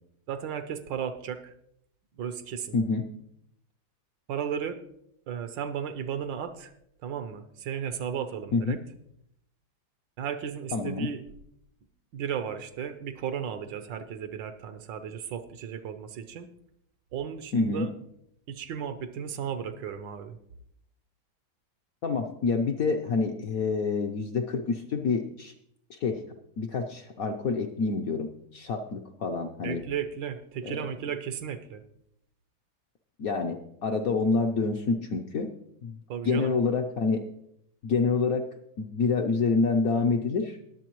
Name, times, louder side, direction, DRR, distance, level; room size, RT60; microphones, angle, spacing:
voice 1, 0.3-1.5 2.2-2.8 4.3-4.8 5.3-6.7 7.0-8.8 10.2-11.2 12.1-16.5 17.1-17.9 18.5-20.4 29.6-31.8 36.1-36.5, right 8 dB, 75° right, 10 dB, 1.4 m, -34 dB
voice 2, 2.7-3.1 8.5-8.8 10.7-11.1 17.5-17.9 22.0-25.5 25.9-26.2 26.6-29.8 30.6-30.8 33.2-35.5 35.8-36.0 36.2-37.2 37.8-38.5 38.8-40.6, left 4 dB, 60° left, 4 dB, 0.9 m, -27 dB
20.0 x 7.7 x 3.0 m, 0.73 s
omnidirectional pair, 2.1 m